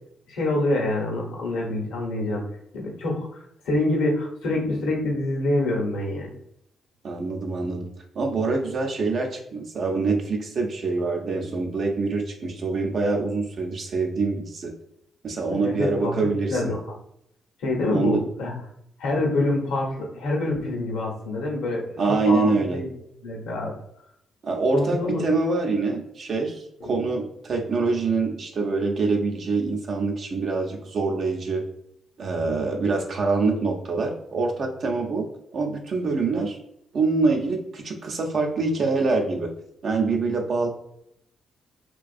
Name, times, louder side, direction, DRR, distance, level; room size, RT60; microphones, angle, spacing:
voice 1, 0.3-2.4 2.7-6.3 15.5-16.1 16.5-17.0 17.6-18.5 19.0-22.0 22.2-22.9 23.2-23.7 24.7-25.2 26.8-27.1, left 2 dB, 80° left, -1 dB, 0.8 m, -26 dB
voice 2, 7.0-7.9 8.1-14.7 15.2-16.7 17.9-18.2 22.0-22.8 24.4-31.6 32.2-35.3 35.5-36.6 36.9-39.5 39.8-40.7, right 3 dB, 60° right, 2 dB, 0.6 m, -25 dB
2.5 x 2.2 x 2.4 m, 0.76 s
supercardioid pair, 50°, 0 cm